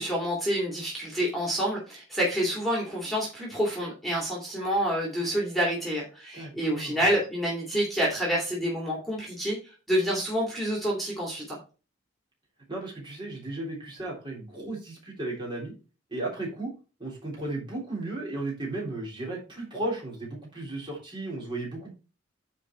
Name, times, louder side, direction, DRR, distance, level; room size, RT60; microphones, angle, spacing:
voice 1, 0.0-11.6, equal, ahead, -4 dB, 2.8 m, -28 dB
voice 2, 6.3-7.0 12.7-15.7 16.1-16.7 17.0-21.9, right 2 dB, 25° right, -3 dB, 3.3 m, -35 dB
9.8 x 4.2 x 4.3 m, 0.33 s
head